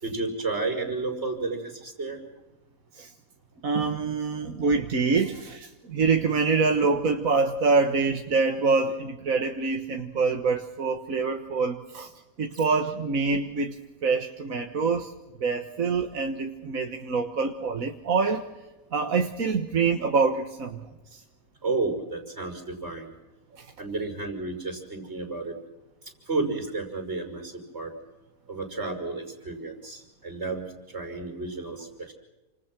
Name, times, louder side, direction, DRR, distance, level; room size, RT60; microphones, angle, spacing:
voice 1, 0.0-2.2 12.5-12.6 21.6-23.1 23.8-25.5 26.3-27.9 28.5-30.6 30.9-32.1, right 3 dB, 50° right, 5 dB, 6.2 m, -32 dB
voice 2, 3.6-12.1 12.4-15.1 15.4-18.4 18.9-20.8 21.1-21.2 23.6-23.7, right 4 dB, 70° right, 4 dB, 1.8 m, -25 dB
29.5 x 26.5 x 6.2 m, 1.1 s
omnidirectional pair, 1.5 m